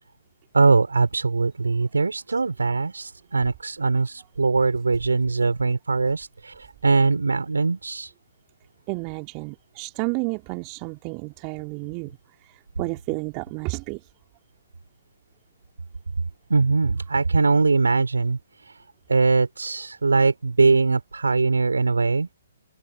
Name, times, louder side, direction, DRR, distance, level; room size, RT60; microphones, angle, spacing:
voice 1, 0.5-8.1 16.5-18.8 19.1-22.3, right 4 dB, 80° right, 5.6 m, -21 dB
voice 2, 8.9-14.1, right 33 dB, 30° right, 3.7 m, -31 dB
figure-of-eight pair, 130°, 0 cm